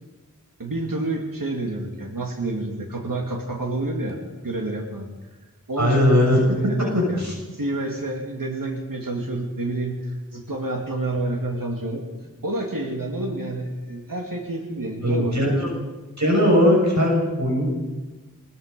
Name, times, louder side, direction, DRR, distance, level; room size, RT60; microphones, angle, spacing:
voice 1, 0.6-5.1 5.7-7.2 7.5-12.0 12.4-15.6, right 2 dB, 85° right, 1 dB, 2.7 m, -29 dB
voice 2, 5.8-6.4 6.9-7.3 15.0-15.7 16.2-17.7, left 1 dB, 60° right, -2 dB, 6.8 m, -19 dB
23.5 x 21.5 x 5.4 m, 1.2 s
wide cardioid pair, 45°, 33 cm